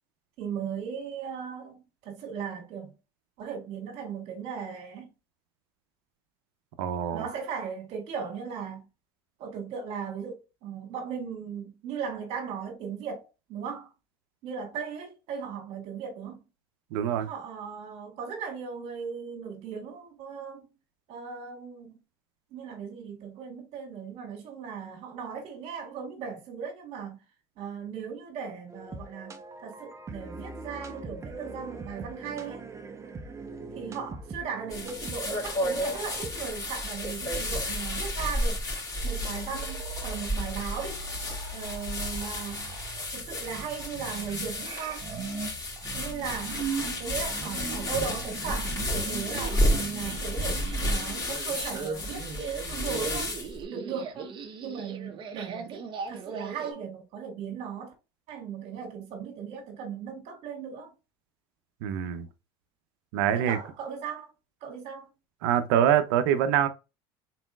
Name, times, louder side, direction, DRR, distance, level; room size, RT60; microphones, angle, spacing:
voice 1, 0.4-2.9 3.4-5.1 7.1-8.9 9.4-13.9 14.4-16.4 17.2-20.7 21.1-21.9 22.5-27.2 27.6-32.7 33.7-38.6 39.0-41.0 41.5-42.7 43.1-45.1 45.9-46.6 47.0-53.4 53.7-57.9 58.3-60.9 63.3-64.3 64.6-65.1, right 6 dB, 60° right, 2.0 m, -37 dB
voice 2, 6.8-7.2 16.9-17.3 61.8-62.3 63.1-63.6 65.4-66.7, right 9 dB, 80° right, 0.6 m, -24 dB
sound 1, 28.7-36.5, right 3 dB, 25° right, 0.8 m, -42 dB
sound 2, 34.7-53.6, left 1 dB, 30° left, 2.5 m, -32 dB
sound 3, 39.0-56.7, right 5 dB, 40° right, 1.1 m, -39 dB
4.2 x 4.0 x 2.4 m
supercardioid pair, 105°, 12 cm